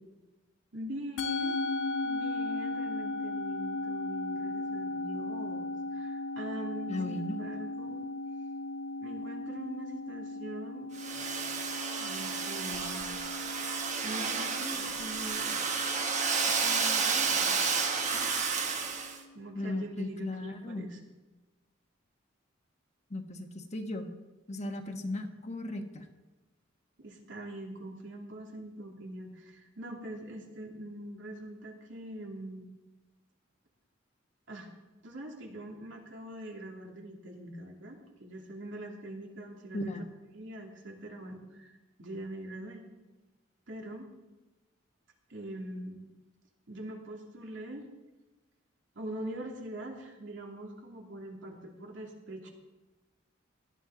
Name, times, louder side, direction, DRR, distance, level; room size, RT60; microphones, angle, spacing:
voice 1, 0.7-1.6 2.0-8.1 9.0-10.9 12.0-13.1 14.0-15.6 16.4-17.7 18.1-18.3 19.3-21.0 24.8-24.9 27.0-32.6 34.5-34.7 35.0-40.0 40.3-42.8 43.7-44.1 45.3-46.0 46.7-47.9 48.9-52.5, right 1 dB, 70° right, 0 dB, 2.6 m, -43 dB
Musical instrument, 1.2-19.7, left 2 dB, 70° left, 1.0 m, -38 dB
voice 2, 6.9-7.4 19.5-20.9 23.1-24.1 24.5-26.0 39.7-40.0, left 1 dB, 35° left, 5 dB, 1.2 m, -36 dB
Domestic sounds home sounds, 11.0-19.2, right 5 dB, 40° right, 1.3 m, -31 dB
18.0 x 12.5 x 3.9 m, 1.1 s
head